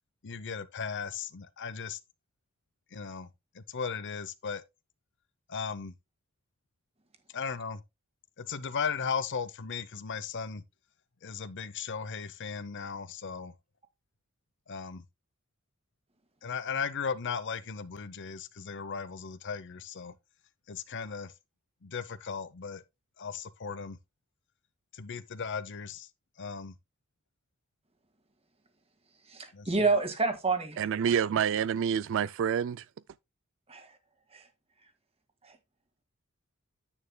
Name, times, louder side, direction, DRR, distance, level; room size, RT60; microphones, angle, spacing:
voice 1, 0.2-2.0 2.9-4.6 5.5-5.9 7.3-7.8 8.4-10.6 11.2-13.5 14.7-15.1 16.4-20.1 20.7-21.3 21.8-22.8 23.2-24.0 24.9-26.1 26.4-26.7 29.5-29.7, left 6 dB, 55° left, 0.7 m, -36 dB
voice 2, 29.3-30.7 33.7-33.9 34.3-34.5 35.4-35.6, right 3 dB, 30° right, 1.8 m, -28 dB
voice 3, 30.8-32.9, right 8 dB, 60° right, 0.3 m, -28 dB
9.7 x 9.1 x 2.2 m
head